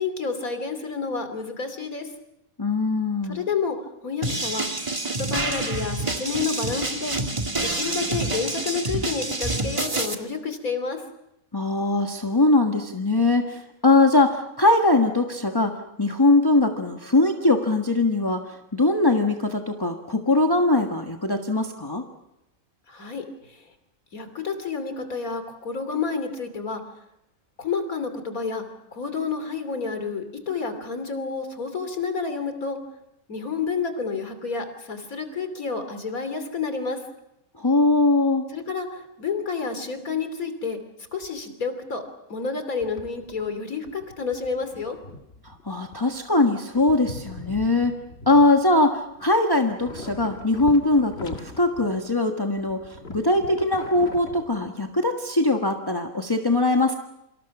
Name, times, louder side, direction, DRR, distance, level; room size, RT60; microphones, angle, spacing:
voice 1, 0.0-2.1 3.3-3.8 4.0-4.7 5.0-7.2 7.6-11.0 22.9-23.7 24.1-26.8 27.6-28.6 28.9-32.8 33.3-37.0 38.5-40.8 41.1-42.0 42.3-45.0, left 5 dB, 75° left, 8 dB, 3.4 m, -29 dB
voice 2, 2.6-3.4 11.5-15.7 16.0-22.0 37.6-38.4 45.4-48.0 48.3-57.0, left 2 dB, 15° left, 3 dB, 1.5 m, -21 dB
sound 1, 4.2-10.1, right 2 dB, 20° right, 1.8 m, -27 dB
sound 2, 42.8-43.6 43.9-46.4 46.7-49.3 49.6-52.3 52.6-55.0, left 3 dB, 50° left, 2.2 m, -41 dB
28.0 x 26.0 x 6.1 m, 0.86 s
omnidirectional pair, 1.5 m